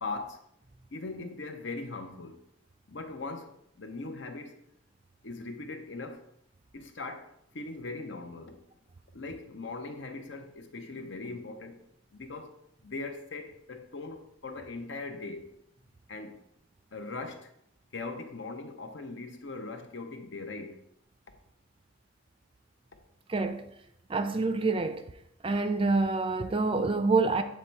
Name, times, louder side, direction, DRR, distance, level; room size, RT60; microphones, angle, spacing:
voice 1, 0.0-0.4 0.9-2.4 2.9-4.6 5.2-6.2 6.7-8.6 9.1-11.8 12.1-15.6 16.1-16.4 16.9-17.5 17.9-20.8, left 3 dB, 65° left, 0.7 m, -40 dB
voice 2, 23.3-23.7 24.1-25.0 25.4-27.4, right 3 dB, 25° right, 0.4 m, -27 dB
8.2 x 3.1 x 4.5 m
head